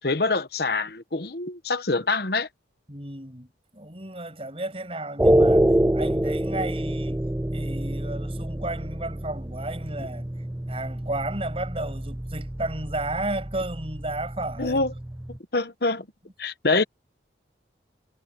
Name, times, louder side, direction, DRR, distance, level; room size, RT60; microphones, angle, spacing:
voice 1, 0.0-2.5 14.6-14.9 15.5-16.1 16.4-16.8, left 3 dB, 55° left, 1.2 m, -25 dB
voice 2, 2.9-7.2 7.5-10.3 10.7-14.9, right 2 dB, 30° right, 7.7 m, -33 dB
sound 1, 5.2-15.4, right 1 dB, 10° right, 0.4 m, -26 dB
head